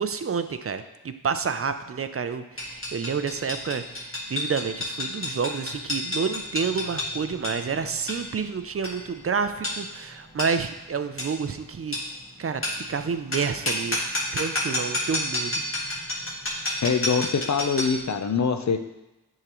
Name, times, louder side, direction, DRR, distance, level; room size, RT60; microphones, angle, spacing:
voice 1, 0.0-12.0 12.4-14.0 14.3-15.6, right 6 dB, 40° right, 10 dB, 0.4 m, -29 dB
sound 1, 2.6-18.0, left 1 dB, 35° left, 1.9 m, -31 dB
voice 2, 16.8-18.8, left 6 dB, 55° left, 7 dB, 0.5 m, -24 dB
9.7 x 3.7 x 3.0 m, 0.95 s
wide cardioid pair, 75°, 35 cm